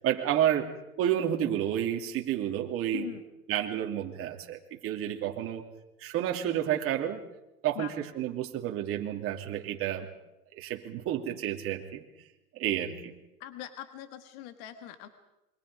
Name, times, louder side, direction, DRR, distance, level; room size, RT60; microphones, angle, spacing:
voice 1, 0.0-0.7 1.0-3.0 3.5-5.6 6.0-7.2 7.6-10.1 10.6-12.0 12.5-13.1, right 11 dB, 30° right, 2 dB, 2.9 m, -30 dB
voice 2, 2.9-3.2 7.8-7.9 13.4-15.1, left 12 dB, 40° left, 8 dB, 1.9 m, -41 dB
28.0 x 23.5 x 5.0 m, 0.94 s
hypercardioid pair, 125°, 46 cm